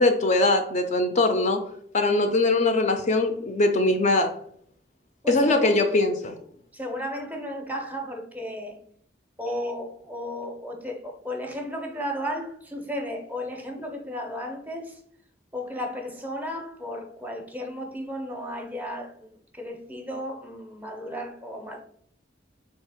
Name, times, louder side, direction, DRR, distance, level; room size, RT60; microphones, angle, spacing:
voice 1, 0.0-1.6 1.9-4.3 5.3-6.4, left 2 dB, 40° left, 0.4 m, -21 dB
voice 2, 6.7-8.8 9.4-15.0 15.5-21.8, equal, 10° right, 0.6 m, -34 dB
3.6 x 2.8 x 4.8 m
head